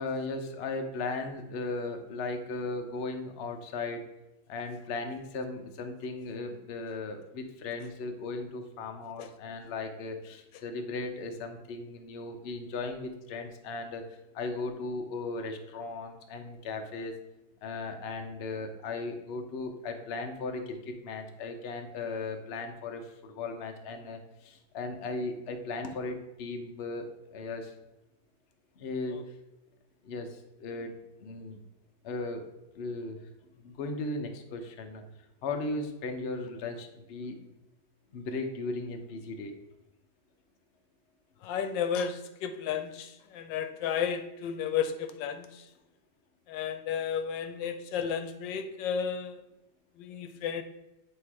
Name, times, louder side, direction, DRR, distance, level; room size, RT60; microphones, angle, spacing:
voice 1, 0.0-4.0 4.5-14.0 14.3-17.1 17.6-27.7 28.8-29.3 30.0-31.6 32.0-32.4 32.7-33.2 33.6-35.0 35.4-37.4 38.1-39.6, left 3 dB, 55° left, 4 dB, 0.7 m, -37 dB
voice 2, 41.4-45.6 46.5-49.4 50.0-50.6, left 7 dB, 85° left, 9 dB, 1.3 m, -33 dB
8.1 x 3.2 x 4.7 m, 0.93 s
omnidirectional pair, 2.0 m